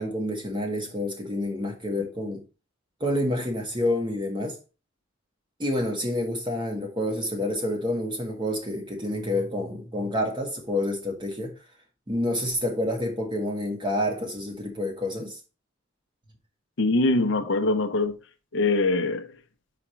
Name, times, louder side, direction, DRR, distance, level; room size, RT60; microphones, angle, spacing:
voice 1, 0.0-2.4 3.0-4.6 5.6-11.5 12.1-15.4, left 1 dB, 25° right, 1.7 m, -28 dB
voice 2, 16.8-18.2 18.5-19.3, left 2 dB, 65° left, 0.8 m, -23 dB
5.0 x 5.0 x 4.4 m
head